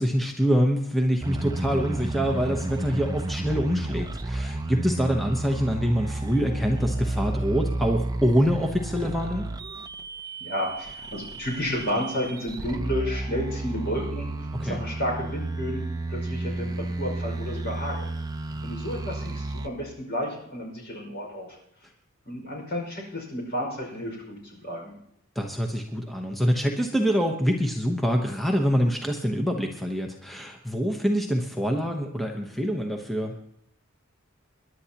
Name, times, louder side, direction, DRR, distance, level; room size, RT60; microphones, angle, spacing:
voice 1, 0.0-9.5 14.5-14.8 25.3-33.3, equal, ahead, 1 dB, 1.0 m, -25 dB
sound 1, 1.2-19.7, right 2 dB, 20° right, 0.6 m, -32 dB
voice 2, 10.4-14.3 14.6-15.8 16.1-18.1 18.6-21.6 22.3-24.9, equal, 55° left, 0 dB, 5.4 m, -31 dB
27.0 x 11.5 x 2.9 m, 0.73 s
head